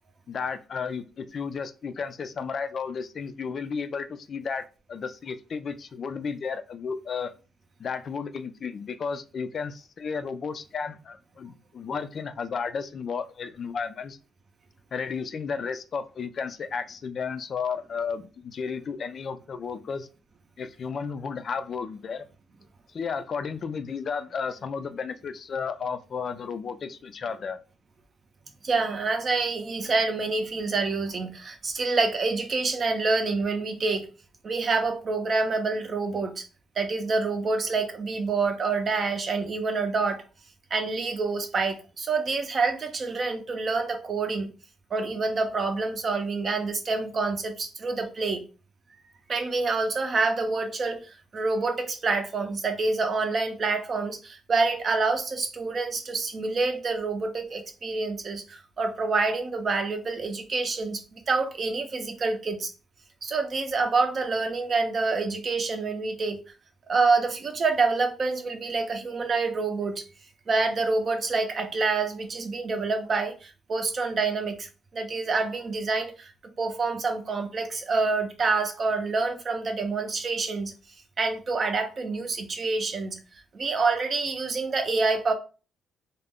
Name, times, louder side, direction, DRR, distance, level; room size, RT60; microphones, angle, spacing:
voice 1, 0.3-7.3 7.8-14.2 14.9-20.1 20.6-22.3 22.9-27.6, left 5 dB, 50° left, 0.3 m, -33 dB
voice 2, 28.6-34.1 34.4-36.4 36.8-40.2 40.7-44.5 44.9-48.4 49.3-62.7 63.2-66.4 66.9-70.0 70.5-76.3 76.6-80.7 81.2-83.2 83.5-85.3, right 3 dB, 45° right, 0.6 m, -27 dB
2.4 x 2.1 x 3.4 m
cardioid pair, 90°, 0 cm